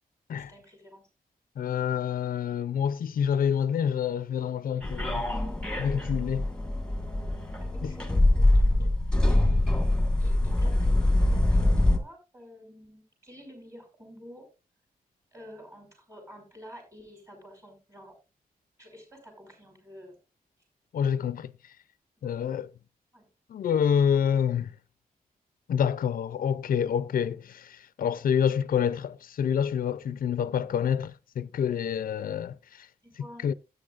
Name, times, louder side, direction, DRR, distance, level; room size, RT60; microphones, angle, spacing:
voice 1, 0.5-1.1 7.6-8.7 10.2-14.5 15.3-18.1 18.8-20.2 23.1-23.3 28.7-29.0 33.0-33.4, equal, 20° right, 5.8 m, -50 dB
voice 2, 1.6-5.2 5.8-6.5 7.8-7.9 8.8-8.9 10.6-10.7 20.9-21.7 22.2-22.7 23.5-24.8 25.7-32.9 33.2-33.5, left 8 dB, 65° left, 0.5 m, -27 dB
sound 1, 4.8-12.0, left 1 dB, 5° left, 1.5 m, -24 dB
16.0 x 9.3 x 2.5 m
wide cardioid pair, 160°, 15 cm